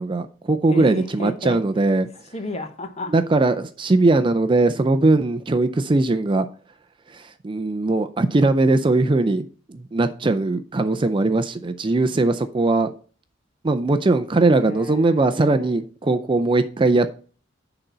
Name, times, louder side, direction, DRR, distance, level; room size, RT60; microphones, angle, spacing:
voice 1, 0.0-2.1 3.1-6.5 7.1-12.9 13.6-17.1, right 2 dB, 25° right, 0.4 m, -20 dB
voice 2, 0.7-1.6 2.3-3.1 14.5-15.7, equal, 35° left, 1.0 m, -33 dB
10.0 x 3.9 x 5.5 m
head